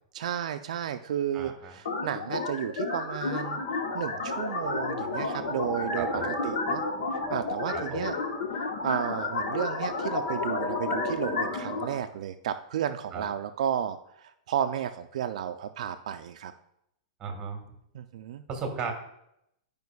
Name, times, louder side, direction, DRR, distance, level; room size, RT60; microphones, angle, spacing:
voice 1, 0.1-3.6 3.9-6.8 7.3-8.2 8.8-16.5 17.9-18.4, right 9 dB, 75° right, 8 dB, 0.3 m, -32 dB
voice 2, 1.3-1.8 6.0-6.4 7.7-8.1 13.1-13.3 17.2-17.6 18.5-18.9, right 5 dB, 20° right, 3 dB, 1.3 m, -35 dB
sound 1, 1.9-11.8, left 4 dB, 85° left, 1.1 m, -32 dB
sound 2, 3.3-12.0, right 1 dB, ahead, 0.6 m, -39 dB
10.5 x 5.1 x 2.3 m, 0.78 s
supercardioid pair, 150°, 4 cm